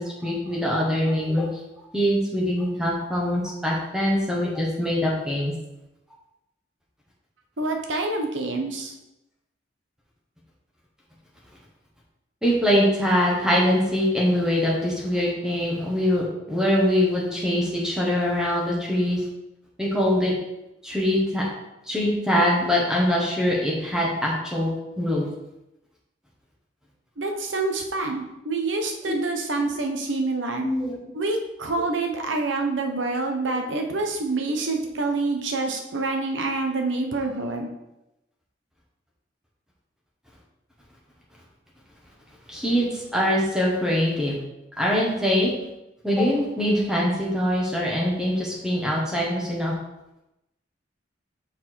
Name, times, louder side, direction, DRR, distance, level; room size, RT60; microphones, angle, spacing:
voice 1, 0.0-1.5 1.9-5.5 12.4-19.2 19.8-20.3 20.8-21.4 21.9-24.7 25.0-25.3 29.0-29.1 30.6-30.9 42.5-44.3 44.8-45.5 46.0-49.7, equal, 5° right, -4 dB, 1.4 m, -23 dB
voice 2, 7.6-8.9 27.2-30.6 31.1-37.7, right 3 dB, 80° right, 4 dB, 1.0 m, -27 dB
6.0 x 4.4 x 4.5 m, 0.91 s
head